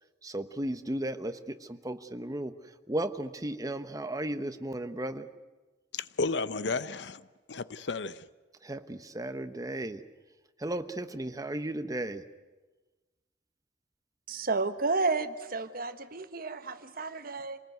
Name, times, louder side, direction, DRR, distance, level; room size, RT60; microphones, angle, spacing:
voice 1, 0.2-5.3 8.6-10.0 10.6-12.2, right 1 dB, 20° right, 1.1 m, -35 dB
voice 2, 5.9-8.3, left 3 dB, 70° left, 0.7 m, -33 dB
voice 3, 14.3-17.6, right 3 dB, 55° right, 1.3 m, -31 dB
26.5 x 19.5 x 9.4 m
head